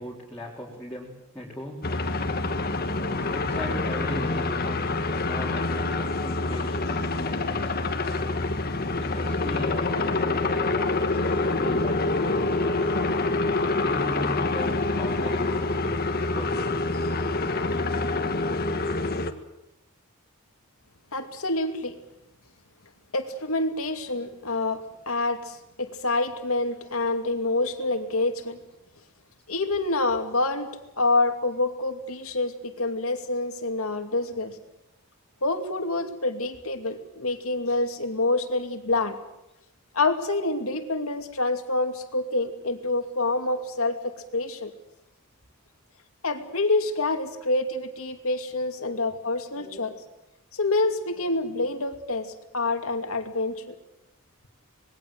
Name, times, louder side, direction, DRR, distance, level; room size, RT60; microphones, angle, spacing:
voice 1, 0.0-1.8 3.3-7.9 8.9-12.6 13.8-16.8 24.1-24.2 48.8-49.1 49.6-49.9 51.2-51.3 51.6-51.7, left 1 dB, 5° left, -6 dB, 4.2 m, -38 dB
sound 1, 1.8-19.3, left 2 dB, 45° left, 1.8 m, -26 dB
voice 2, 21.1-22.0 23.1-28.6 29.5-30.7 31.0-34.6 35.4-39.2 39.9-44.7 46.2-49.9 50.5-53.7, left 2 dB, 70° left, 6 dB, 2.6 m, -27 dB
26.0 x 21.0 x 7.8 m, 0.92 s
head